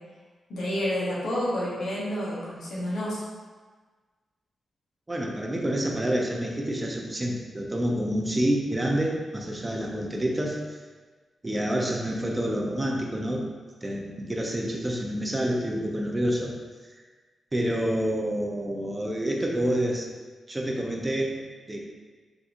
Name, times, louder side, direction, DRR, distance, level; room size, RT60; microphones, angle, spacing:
voice 1, 0.5-3.2, equal, 80° left, -7 dB, 1.0 m, -29 dB
voice 2, 5.1-10.6 11.4-13.5 13.8-16.5 17.5-20.1 20.5-21.4 21.7-21.8, right 1 dB, 25° right, -1 dB, 0.6 m, -28 dB
3.7 x 2.6 x 2.5 m, 1.4 s
cardioid pair, 55°, 0 cm